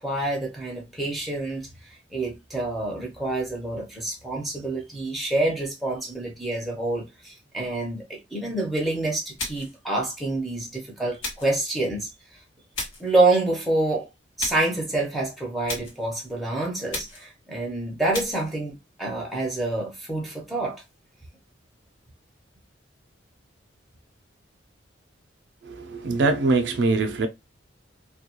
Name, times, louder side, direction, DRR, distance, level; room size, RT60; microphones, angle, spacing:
voice 1, 0.0-1.7 2.1-12.1 13.0-14.1 14.4-20.8, right 2 dB, ahead, 0.6 m, -27 dB
sound 1, 9.4-9.8 11.2-11.6 12.7-13.1 14.4-14.8 15.7-16.0 16.9-17.3 18.1-18.5, left 2 dB, 90° left, 1.0 m, -34 dB
voice 2, 25.6-27.3, right 3 dB, 65° right, 0.4 m, -23 dB
2.2 x 2.2 x 2.8 m
head